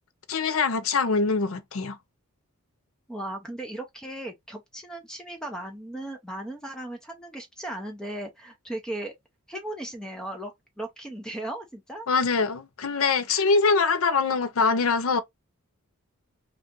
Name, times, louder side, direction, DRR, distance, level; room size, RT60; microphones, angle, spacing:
voice 1, 0.3-2.0 12.1-15.2, left 4 dB, 65° left, 0.5 m, -23 dB
voice 2, 3.1-9.1 9.5-12.1 13.3-13.5, right 1 dB, 5° left, 0.5 m, -37 dB
2.8 x 2.4 x 3.6 m
head